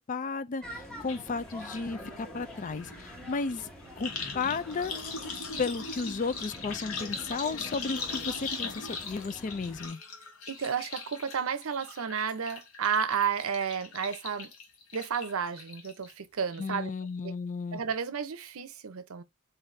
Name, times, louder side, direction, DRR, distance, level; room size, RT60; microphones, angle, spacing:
voice 1, 0.1-3.7 4.0-5.2 5.6-10.0 16.6-17.8, left 4 dB, 35° left, 0.4 m, -34 dB
sound 1, 0.6-9.9, equal, 5° left, 1.2 m, -46 dB
sound 2, 1.1-1.2 1.5-16.1 16.5-17.0 17.3-17.4, left 4 dB, 75° left, 1.3 m, -40 dB
voice 2, 10.5-14.5 14.9-16.9 17.2-17.3 17.7-19.2, right 7 dB, 75° right, 0.6 m, -32 dB
4.0 x 2.6 x 3.2 m
head